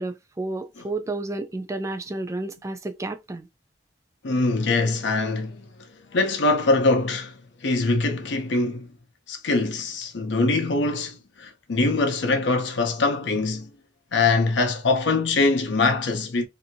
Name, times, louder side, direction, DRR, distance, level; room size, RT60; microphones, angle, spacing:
voice 1, 0.0-3.5, right 2 dB, 15° right, 0.4 m, -31 dB
voice 2, 4.2-5.7 6.1-7.3 7.6-8.9 9.3-13.7 14.1-16.5, left 3 dB, 70° left, 0.6 m, -23 dB
2.6 x 2.5 x 2.7 m
head